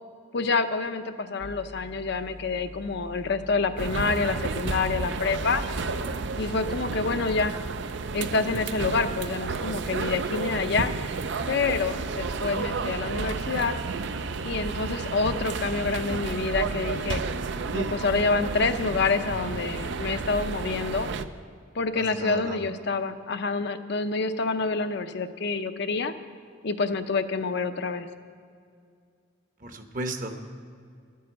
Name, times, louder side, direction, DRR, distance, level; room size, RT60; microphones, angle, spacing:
voice 1, 0.3-5.6 6.4-7.5 8.1-10.9 11.5-13.7 14.4-17.2 17.7-21.1 21.7-26.1 26.6-28.1, left 4 dB, 60° left, 8 dB, 0.6 m, -27 dB
sound 1, 1.4-7.4, equal, 10° right, 0.6 m, -45 dB
sound 2, 3.8-21.3, right 4 dB, 65° right, 0.5 m, -31 dB
voice 2, 21.9-22.7 29.6-30.3, right 1 dB, 45° right, 6 dB, 1.0 m, -35 dB
12.0 x 9.4 x 7.8 m, 2.2 s
head